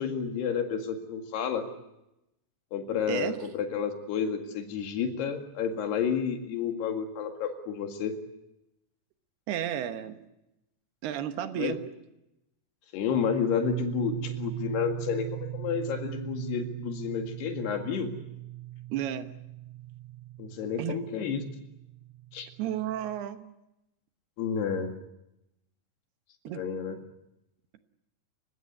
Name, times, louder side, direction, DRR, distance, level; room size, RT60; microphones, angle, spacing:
voice 1, 0.0-1.7 2.7-8.2 11.6-11.7 12.9-18.1 20.4-21.4 22.3-22.5 24.4-24.9 26.5-27.0, left 7 dB, 70° left, 5 dB, 4.0 m, -30 dB
voice 2, 3.1-3.4 9.5-10.2 11.0-11.8 18.9-19.3 20.8-21.0 22.6-23.5 26.4-26.6, right 11 dB, 75° right, 9 dB, 3.1 m, -32 dB
sound 1, 13.6-23.2, right 14 dB, 55° right, 3.0 m, -39 dB
29.5 x 16.5 x 9.6 m, 0.90 s
omnidirectional pair, 4.9 m